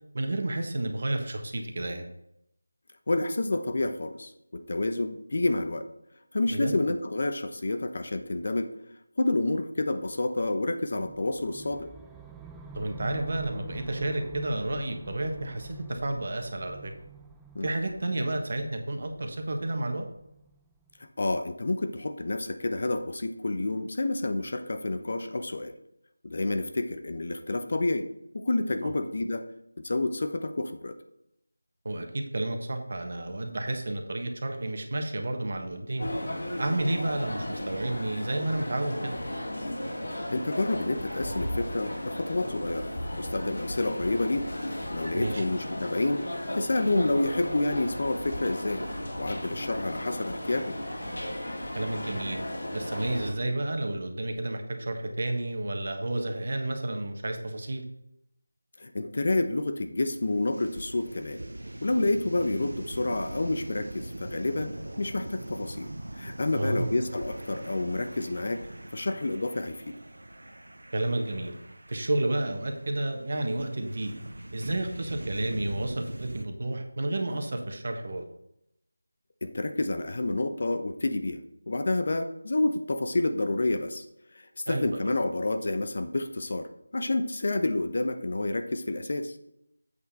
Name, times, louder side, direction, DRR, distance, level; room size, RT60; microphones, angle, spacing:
voice 1, 0.1-2.1 6.5-6.7 12.7-16.9 17.6-20.1 28.8-28.9 31.8-36.1 36.6-39.1 45.1-45.4 51.7-52.4 52.7-57.8 66.5-66.9 70.9-71.5 71.9-74.1 74.5-78.2 84.7-85.1, right 2 dB, 50° right, 5 dB, 1.3 m, -31 dB
voice 2, 3.1-5.9 6.3-8.7 9.2-11.9 17.5-17.7 21.2-25.7 26.2-28.1 28.3-29.5 29.8-31.0 40.3-42.9 43.2-44.5 44.9-46.2 46.6-48.9 49.2-50.8 58.8-61.4 61.8-68.7 68.9-70.0 79.4-84.0 84.3-86.7 86.9-89.4, left 2 dB, 50° left, 8 dB, 0.8 m, -29 dB
sound 1, 10.9-21.0, right 5 dB, 5° right, 0.3 m, -47 dB
sound 2, 36.0-53.3, left 1 dB, 70° left, 2.6 m, -35 dB
sound 3, 60.1-76.4, right 1 dB, 80° right, 0.9 m, -42 dB
8.1 x 5.8 x 4.2 m, 0.80 s
figure-of-eight pair, 170°, 0 cm